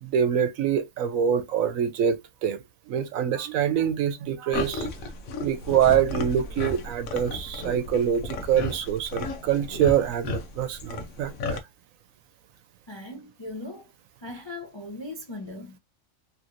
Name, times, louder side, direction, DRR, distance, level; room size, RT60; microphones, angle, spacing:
voice 1, 0.0-2.6 2.9-4.9 5.4-11.6, right 9 dB, 80° right, 1.0 m, -25 dB
sound 1, 4.5-11.6, left 3 dB, 85° left, 1.1 m, -34 dB
voice 2, 12.9-13.9 14.2-15.8, left 2 dB, 35° left, 0.4 m, -39 dB
3.1 x 2.9 x 2.5 m
omnidirectional pair, 1.4 m